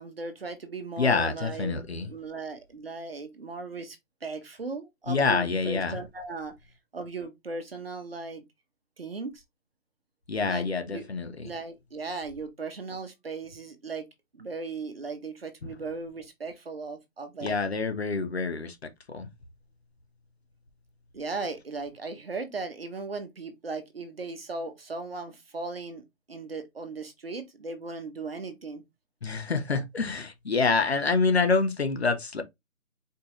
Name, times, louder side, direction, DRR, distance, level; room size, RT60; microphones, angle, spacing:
voice 1, 0.0-1.8 2.1-6.5 6.9-8.4 9.0-9.3 10.4-11.1 11.4-14.0 14.3-17.5 21.1-26.0 26.3-28.8, right 3 dB, 45° right, 1.0 m, -37 dB
voice 2, 1.0-2.1 5.1-6.0 10.3-11.5 17.4-19.3 29.2-32.4, left 4 dB, 50° left, 1.0 m, -27 dB
4.5 x 3.5 x 3.1 m
hypercardioid pair, 170°, 42 cm